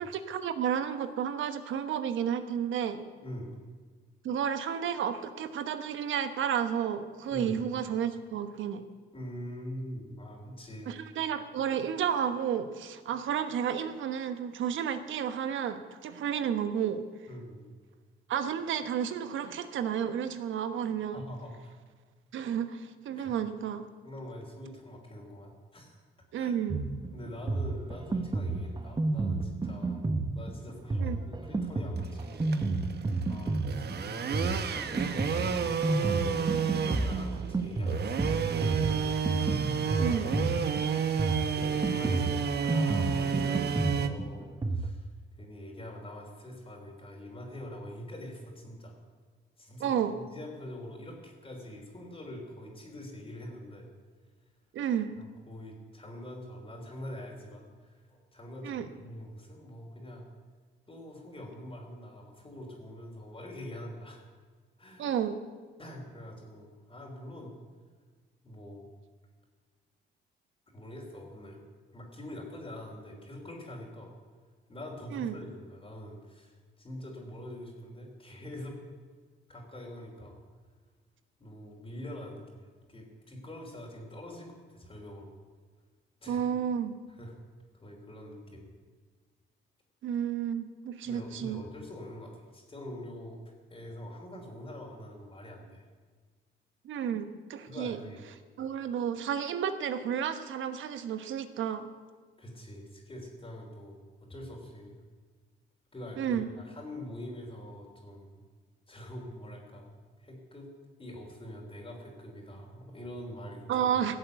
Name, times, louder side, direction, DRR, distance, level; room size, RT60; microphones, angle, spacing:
voice 1, 0.0-3.0 4.2-8.8 10.9-17.0 18.3-21.2 22.3-23.8 26.3-26.8 31.0-31.2 40.0-40.3 49.8-50.2 54.7-55.1 58.6-58.9 65.0-65.4 75.1-75.4 86.3-87.0 90.0-91.6 96.8-98.0 98.6-101.9 106.2-106.5 113.7-114.2, right 8 dB, 75° right, 10 dB, 1.2 m, -31 dB
voice 2, 3.2-3.6 7.3-7.6 9.1-11.0 17.3-17.6 21.1-21.8 23.2-23.3 24.0-26.0 26.3-26.5 27.1-36.5 37.0-39.1 39.7-40.2 41.6-45.1 45.4-49.0 49.6-53.9 55.1-60.3 60.9-64.2 64.8-65.1 65.8-67.5 68.4-68.9 70.7-71.6 71.9-74.1 74.7-78.8 79.5-80.4 81.4-85.3 86.2-86.4 87.1-87.4 87.7-88.7 91.0-93.4 93.7-95.9 97.6-98.2 102.4-105.0 105.9-108.4 108.9-109.9 110.2-110.7 111.0-113.9, left 1 dB, 25° left, -1 dB, 3.5 m, -44 dB
Drum kit, 26.7-44.9, right 3 dB, 20° right, 1.1 m, -31 dB
sound 1, 32.0-44.1, right 7 dB, 55° right, 1.1 m, -31 dB
16.0 x 7.9 x 8.1 m, 1.5 s
cardioid pair, 90°, 20 cm